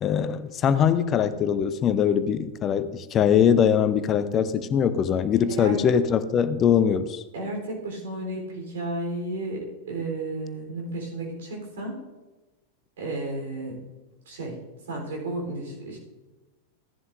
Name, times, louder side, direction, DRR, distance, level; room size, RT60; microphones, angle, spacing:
voice 1, 0.0-7.2, left 8 dB, 30° left, 13 dB, 0.6 m, -22 dB
voice 2, 5.2-5.8 7.3-12.0 13.0-13.8 14.3-14.6 14.9-16.0, right 2 dB, 60° right, 0 dB, 3.8 m, -33 dB
15.5 x 11.0 x 2.6 m, 1.1 s
figure-of-eight pair, 90°, 0 cm